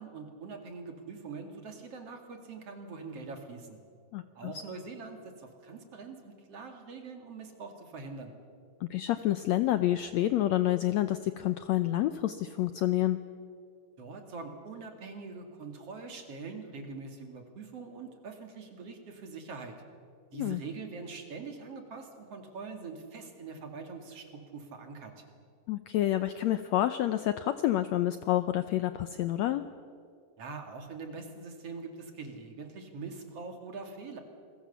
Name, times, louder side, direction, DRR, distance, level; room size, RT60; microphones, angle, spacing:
voice 1, 0.0-3.8 4.3-8.3 14.0-19.7 20.3-25.1 30.4-34.2, right 4 dB, 45° right, 4 dB, 3.0 m, -43 dB
voice 2, 4.1-4.5 8.8-13.2 20.3-20.6 25.7-29.7, left 14 dB, 90° left, 11 dB, 1.5 m, -28 dB
29.0 x 22.0 x 7.0 m, 2.3 s
omnidirectional pair, 4.1 m